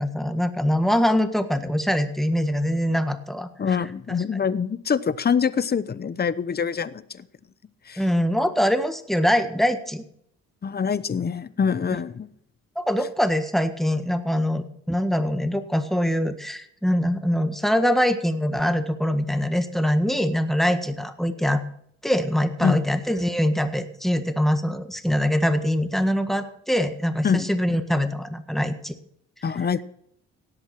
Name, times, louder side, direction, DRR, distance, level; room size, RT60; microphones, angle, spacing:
voice 1, 0.0-3.8 8.0-10.0 12.8-21.6 22.0-28.9, equal, ahead, 8 dB, 1.6 m, -23 dB
voice 2, 3.6-7.3 7.9-8.0 10.6-12.3 22.6-22.8 27.2-27.5 29.4-29.8, left 6 dB, 30° left, 15 dB, 0.9 m, -25 dB
18.0 x 8.0 x 6.0 m, 0.69 s
cardioid pair, 90°, 30 cm